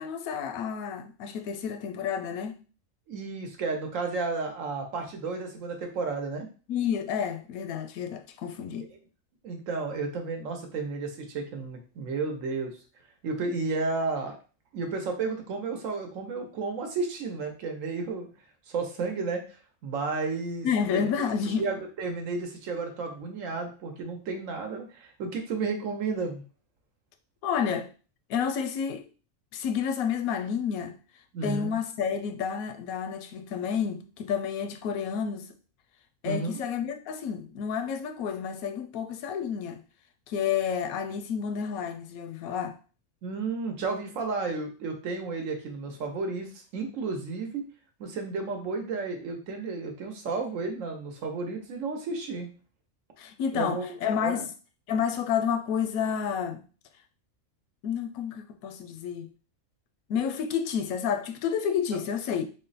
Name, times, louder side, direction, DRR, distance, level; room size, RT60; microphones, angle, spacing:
voice 1, 0.0-2.6 6.7-8.9 20.6-21.7 27.4-27.9 28.3-29.1 29.5-30.9 31.4-35.5 36.2-39.8 40.3-42.8 53.2-54.5 54.9-56.6 57.8-59.3 60.1-62.5, left 7 dB, 85° left, 1.0 m, -30 dB
voice 2, 3.1-6.5 8.7-9.0 9.4-12.8 13.2-14.4 14.7-18.3 18.7-19.4 19.8-20.7 20.9-21.1 21.6-26.4 31.3-31.7 36.2-36.6 43.2-47.6 48.0-52.5 53.5-54.0 54.2-54.5, right 4 dB, 70° right, 1.1 m, -32 dB
3.8 x 2.1 x 3.9 m
omnidirectional pair, 1.5 m